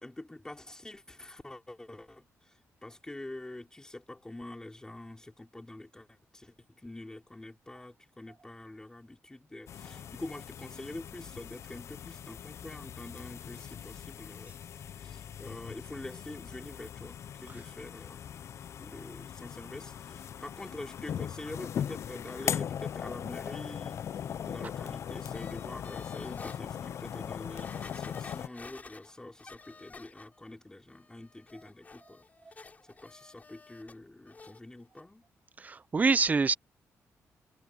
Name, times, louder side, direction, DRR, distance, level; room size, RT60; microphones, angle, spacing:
voice 1, 0.0-14.6 15.0-18.4 18.8-24.0 24.5-32.2 32.9-35.2, left 2 dB, 10° left, 4.5 m, -46 dB
sound 1, 9.7-28.5, left 9 dB, 60° left, 0.4 m, -40 dB
sound 2, 25.3-26.6 27.1-27.2 27.6-30.5 30.9-34.0 34.3-34.6 35.0-35.1, left 4 dB, 30° left, 6.7 m, -51 dB
voice 2, 35.6-36.5, right 4 dB, 30° right, 0.6 m, -25 dB
cardioid pair, 115°, 5 cm